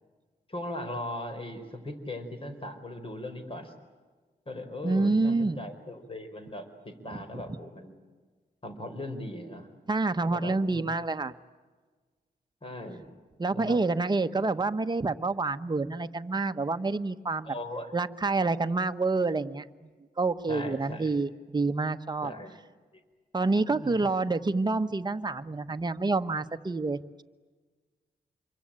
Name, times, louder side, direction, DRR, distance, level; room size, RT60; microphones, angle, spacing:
voice 1, 0.5-3.7 4.5-7.9 8.6-9.7 10.2-10.8 12.6-13.1 13.5-13.8 17.4-17.9 20.5-21.2 22.2-22.6 22.9-23.0 23.7-24.1, left 1 dB, 35° left, 7 dB, 4.6 m, -39 dB
voice 2, 4.8-5.6 7.1-7.2 9.9-11.3 13.4-17.5 17.9-19.6 20.2-22.3 23.3-27.2, right 3 dB, 25° right, 9 dB, 1.1 m, -28 dB
27.0 x 23.5 x 8.9 m, 1.4 s
wide cardioid pair, 100°, 16 cm